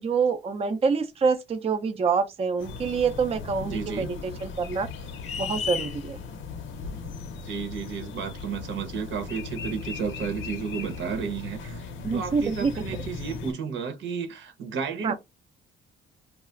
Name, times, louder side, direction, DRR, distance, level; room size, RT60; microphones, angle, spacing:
voice 1, 0.0-4.9 5.4-6.2 12.0-12.7 15.0-15.1, right 5 dB, 30° right, 0.5 m, -26 dB
sound 1, 2.6-13.5, left 5 dB, 75° left, 0.6 m, -38 dB
voice 2, 3.6-4.1 7.4-15.1, right 6 dB, 75° right, 0.9 m, -32 dB
sound 2, 5.2-6.0, left 7 dB, 35° left, 0.4 m, -31 dB
2.3 x 2.0 x 3.7 m
cardioid pair, 90°, 20 cm